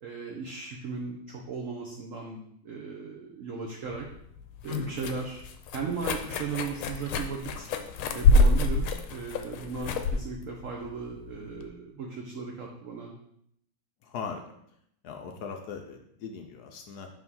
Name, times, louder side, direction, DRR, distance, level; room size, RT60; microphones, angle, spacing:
voice 1, 0.0-4.1 4.6-5.4 5.7-7.7 8.1-13.1, right 5 dB, 70° right, 0 dB, 0.7 m, -37 dB
sound 1, 3.9-11.7, left 2 dB, 90° left, 1.5 m, -27 dB
voice 2, 4.7-5.0 14.0-14.4 15.0-17.1, left 6 dB, 70° left, 4 dB, 0.9 m, -38 dB
4.8 x 3.6 x 5.4 m, 0.72 s
omnidirectional pair, 2.2 m